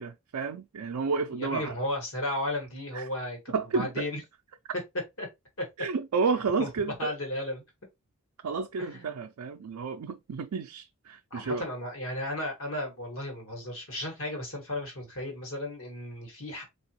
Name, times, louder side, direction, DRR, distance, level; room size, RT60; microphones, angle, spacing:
voice 1, 0.0-1.7 2.9-3.0 3.5-4.1 5.8-7.1 8.4-11.7, right 4 dB, 75° right, 0.4 m, -31 dB
voice 2, 1.3-4.2 5.2-5.3 5.6-5.7 6.6-6.7 7.0-7.6 8.8-9.1 11.3-16.6, left 1 dB, 65° left, 1.7 m, -34 dB
4.0 x 2.9 x 2.9 m
head